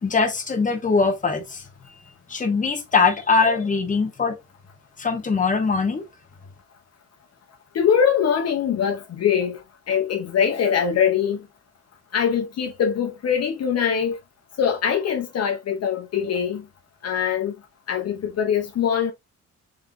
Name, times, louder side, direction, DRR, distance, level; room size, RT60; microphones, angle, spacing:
voice 1, 0.0-1.6 2.3-4.4 5.0-6.0, left 4 dB, 25° left, 1.1 m, -21 dB
voice 2, 7.7-11.4 12.1-14.2 14.6-16.6 17.0-17.5 17.9-19.1, left 8 dB, 55° left, 0.9 m, -23 dB
3.7 x 3.3 x 2.6 m
cardioid pair, 90°, 30 cm